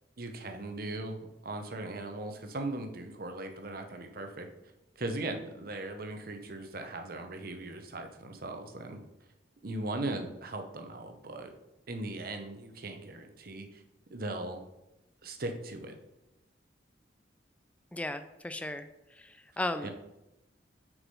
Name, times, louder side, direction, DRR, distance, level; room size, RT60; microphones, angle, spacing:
voice 1, 0.2-4.5 5.0-9.0 9.6-11.5 11.9-13.8 14.1-14.6 15.2-16.0 19.8-19.9, right 2 dB, 55° right, 6 dB, 0.9 m, -38 dB
voice 2, 17.9-18.9 19.6-19.9, left 1 dB, 5° left, 9 dB, 0.3 m, -34 dB
6.6 x 4.8 x 5.4 m, 0.94 s
head